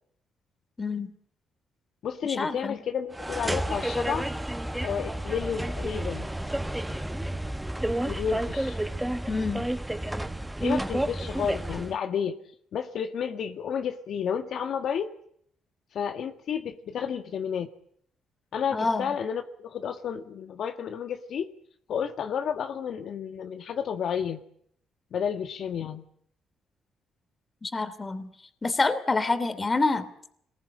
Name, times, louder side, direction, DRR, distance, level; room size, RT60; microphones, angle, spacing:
voice 1, 0.8-1.1 2.2-2.8 9.3-9.7 18.7-19.1 27.6-28.3 28.6-30.1, left 3 dB, 25° left, 12 dB, 2.9 m, -27 dB
voice 2, 2.0-4.3 4.8-6.3 8.1-8.8 10.6-12.4 12.7-15.1 15.9-17.7 18.5-21.5 21.9-24.4 25.1-26.0, left 7 dB, 65° left, 6 dB, 1.7 m, -31 dB
sound 1, 3.1-12.0, right 1 dB, 5° right, 1.3 m, -31 dB
25.5 x 20.5 x 9.8 m, 0.70 s
cardioid pair, 90°, 0 cm